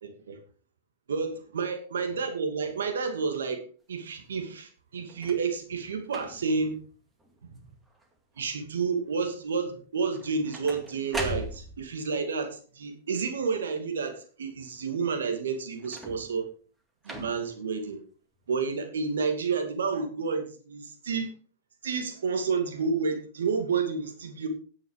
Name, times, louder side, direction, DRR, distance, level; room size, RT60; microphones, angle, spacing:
voice 1, 0.0-0.4 1.1-6.8 7.5-7.6 8.4-16.5 17.0-18.0 18.5-21.3 21.8-24.5, right 5 dB, 85° right, 6 dB, 2.3 m, -30 dB
sound 1, 5.1-5.5 6.1-6.6 7.2-7.6 7.8-8.4 10.1-12.0 15.8-16.4 17.0-17.6 18.4-18.5, right 1 dB, 10° right, 2.1 m, -39 dB
10.5 x 8.3 x 4.8 m, 0.40 s
hypercardioid pair, 125°, 0 cm